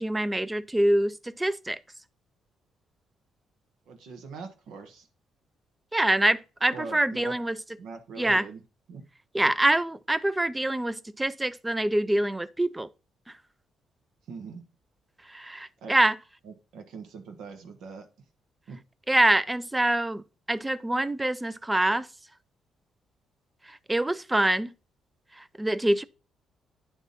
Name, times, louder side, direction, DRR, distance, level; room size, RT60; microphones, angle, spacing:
voice 1, 0.0-1.8 5.9-7.6 8.2-8.4 9.3-12.9 15.3-16.2 19.1-20.2 20.5-22.1 23.7-24.7 25.4-26.0, right 1 dB, 10° right, 0.4 m, -25 dB
voice 2, 3.9-5.1 6.7-7.3 7.8-8.6 8.9-9.0 14.3-14.6 15.8-15.9 16.4-18.1 18.7-18.8, right 5 dB, 85° right, 1.3 m, -42 dB
10.0 x 3.6 x 4.0 m
cardioid pair, 90°, 0 cm